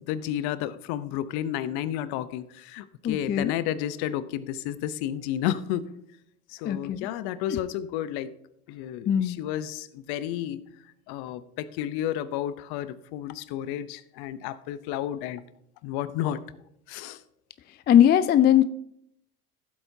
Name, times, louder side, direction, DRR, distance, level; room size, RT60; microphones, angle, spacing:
voice 1, 0.0-5.9 6.5-8.3 8.7-10.6 11.1-15.4 15.8-16.4 16.9-17.2, left 11 dB, 55° left, 14 dB, 0.8 m, -31 dB
voice 2, 3.0-3.5 6.7-7.1 7.5-7.6 9.1-9.4 17.9-18.6, left 10 dB, 25° left, 12 dB, 0.4 m, -20 dB
15.0 x 7.9 x 2.7 m, 0.73 s
hypercardioid pair, 80°, 46 cm